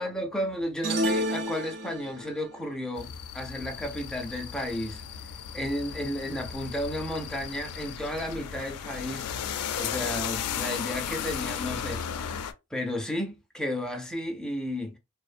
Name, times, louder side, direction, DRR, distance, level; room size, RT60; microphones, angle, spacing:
voice 1, 0.0-5.0 5.5-15.0, left 1 dB, 5° left, 0.4 m, -33 dB
sound 1, 0.8-2.4, equal, 55° right, 0.6 m, -29 dB
sound 2, 3.0-12.5, left 8 dB, 90° left, 0.3 m, -35 dB
2.6 x 2.0 x 2.4 m
head